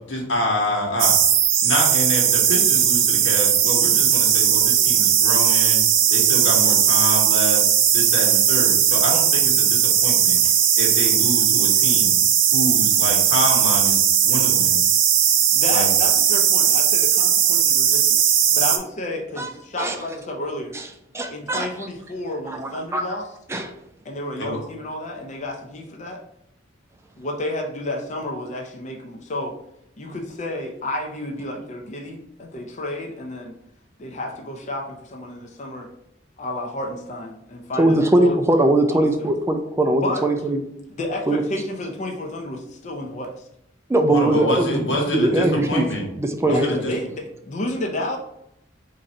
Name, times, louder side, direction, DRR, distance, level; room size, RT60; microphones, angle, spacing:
voice 1, 0.1-1.1 1.6-5.8 6.1-7.6 7.9-10.4 10.8-12.1 12.5-14.0 14.2-14.8 15.7-15.9 24.4-24.6 44.1-46.1 46.4-46.9, equal, 80° left, -1 dB, 1.2 m, -26 dB
sound 1, 1.0-18.8, right 9 dB, 85° right, 0.5 m, -18 dB
voice 2, 15.5-18.2 18.5-20.7 21.3-23.3 24.0-26.2 27.2-29.5 30.0-33.5 34.0-35.9 36.4-38.4 38.9-39.3 39.9-40.2 41.0-43.5 46.5-48.2, left 1 dB, 40° left, 1 dB, 0.5 m, -31 dB
voice 3, 21.1-21.7 22.5-23.2 23.5-23.7 37.8-40.6 41.3-41.4 43.9-45.9 46.2-46.8, right 1 dB, 15° right, 5 dB, 0.3 m, -21 dB
3.7 x 2.6 x 4.2 m, 0.80 s
head